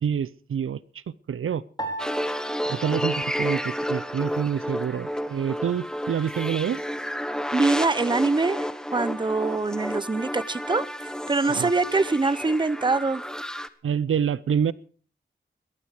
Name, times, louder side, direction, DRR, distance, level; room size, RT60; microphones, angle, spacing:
voice 1, 0.0-1.0 1.3-1.6 2.7-6.8 11.5-11.7 13.8-14.7, right 8 dB, 80° right, 0.6 m, -27 dB
Piano, 1.8-4.3, right 2 dB, 20° left, 4.3 m, -38 dB
sound 1, 2.0-13.7, equal, 5° left, 1.2 m, -31 dB
voice 2, 7.5-10.9 11.3-13.2, right 3 dB, 20° right, 0.7 m, -24 dB
19.0 x 12.5 x 4.9 m
cardioid pair, 55°, 21 cm